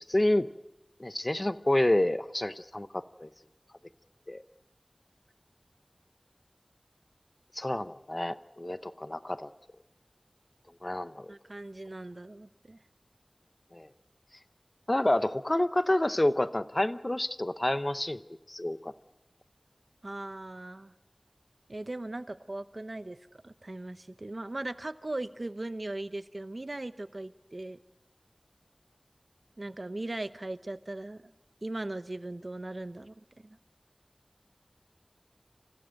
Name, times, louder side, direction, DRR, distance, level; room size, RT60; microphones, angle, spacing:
voice 1, 0.1-0.5 1.0-3.3 4.3-4.4 7.5-9.5 10.8-11.3 13.7-13.9 14.9-18.2 18.5-18.9, left 1 dB, 40° left, 13 dB, 0.8 m, -28 dB
voice 2, 11.3-12.8 20.0-20.9 21.7-27.8 29.6-31.3 31.6-33.1 33.4-33.6, right 2 dB, 65° right, 12 dB, 0.8 m, -39 dB
28.0 x 15.0 x 6.5 m, 0.98 s
wide cardioid pair, 40°, 0 cm